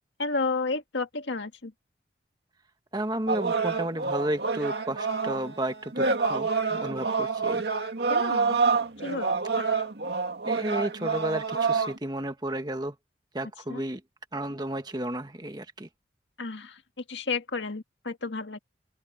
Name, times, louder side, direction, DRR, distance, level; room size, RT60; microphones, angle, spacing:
voice 1, 0.2-1.7 8.1-8.6 9.0-9.7 13.7-13.8 16.4-16.8 17.1-18.6, left 3 dB, 85° left, 1.8 m, -32 dB
voice 2, 2.9-7.6 10.5-12.9 13.3-14.0 14.3-15.9, right 1 dB, 25° right, 1.4 m, -32 dB
sound 1, 3.3-12.0, right 4 dB, 65° right, 2.1 m, -27 dB
open air
head